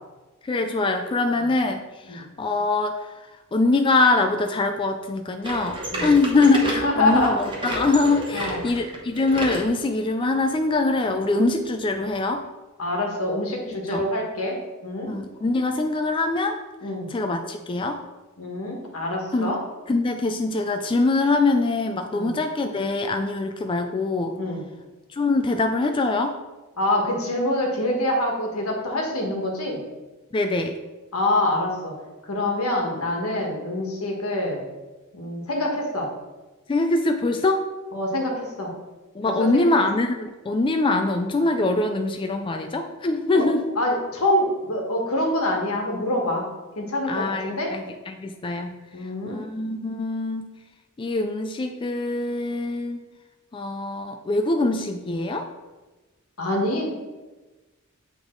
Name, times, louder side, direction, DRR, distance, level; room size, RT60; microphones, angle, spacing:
voice 1, 0.4-3.1 3.5-12.4 13.9-14.1 15.1-16.6 17.1-18.0 19.3-19.6 19.9-24.4 25.1-26.4 30.3-30.8 36.7-37.6 39.2-43.7 47.1-48.8 49.3-50.5 51.0-53.0 53.5-55.5, left 2 dB, 25° left, 5 dB, 0.3 m, -23 dB
sound 1, 5.4-9.7 10.2-10.3 11.0-11.1 12.0-12.1, equal, 20° right, 1.1 m, -31 dB
voice 2, 6.8-7.4 8.3-8.6 12.8-15.1 16.8-17.1 18.4-19.6 22.1-22.3 24.3-24.6 26.8-29.8 31.1-31.9 32.3-34.6 35.1-36.1 37.9-38.7 39.3-39.7 43.3-43.4 43.8-46.4 46.8-47.7 48.9-49.4 56.4-56.9, left 1 dB, 85° left, 0 dB, 1.5 m, -25 dB
8.2 x 3.5 x 3.8 m, 1.2 s
head